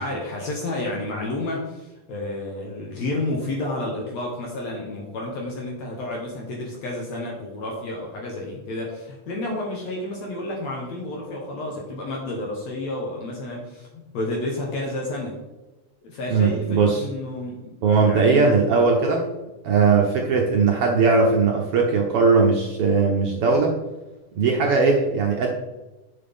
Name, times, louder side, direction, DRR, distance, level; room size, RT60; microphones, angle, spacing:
voice 1, 0.0-15.4 16.0-18.5, left 2 dB, 60° left, -1 dB, 2.3 m, -30 dB
voice 2, 16.3-17.1 17.8-19.2 19.6-23.7 24.3-25.5, right 4 dB, 70° right, 1 dB, 1.4 m, -19 dB
10.5 x 6.2 x 3.6 m, 1.1 s
omnidirectional pair, 3.7 m